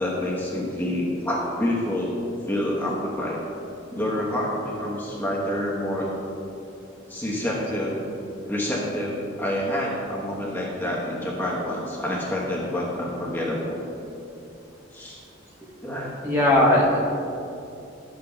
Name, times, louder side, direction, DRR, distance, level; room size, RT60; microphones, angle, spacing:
voice 1, 0.0-3.4 3.9-6.1 7.1-8.0 8.4-13.8 14.9-15.2 15.8-16.1, left 1 dB, 10° left, -5 dB, 0.9 m, -27 dB
voice 2, 16.2-17.0, left 1 dB, 15° right, -4 dB, 1.0 m, -18 dB
12.0 x 7.5 x 2.2 m, 2.7 s
head